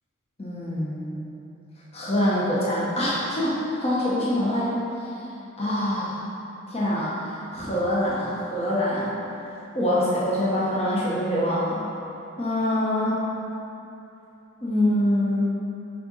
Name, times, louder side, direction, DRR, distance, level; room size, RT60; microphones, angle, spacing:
voice 1, 0.4-1.2 1.9-4.8 5.6-6.2 6.7-7.1 7.5-9.1 9.7-11.8 12.4-13.2 14.6-15.5, left 1 dB, 30° left, -8 dB, 1.2 m, -24 dB
6.7 x 3.8 x 5.6 m, 2.9 s
head